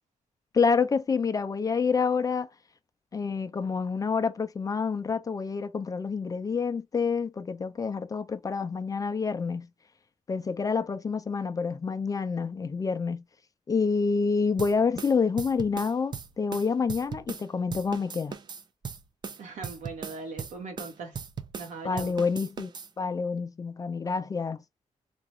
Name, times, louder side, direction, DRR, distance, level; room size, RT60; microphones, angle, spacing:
voice 1, 0.5-2.5 3.1-9.7 10.3-13.2 13.7-18.3 21.8-22.7 23.0-24.6, left 5 dB, 30° left, 0.4 m, -28 dB
sound 1, 14.6-17.5 17.7-21.7 22.0-22.9, right 6 dB, 35° right, 0.5 m, -38 dB
voice 2, 19.4-21.2 21.5-22.2, right 4 dB, 80° right, 1.5 m, -40 dB
3.8 x 2.4 x 3.0 m
wide cardioid pair, 155°, 12 cm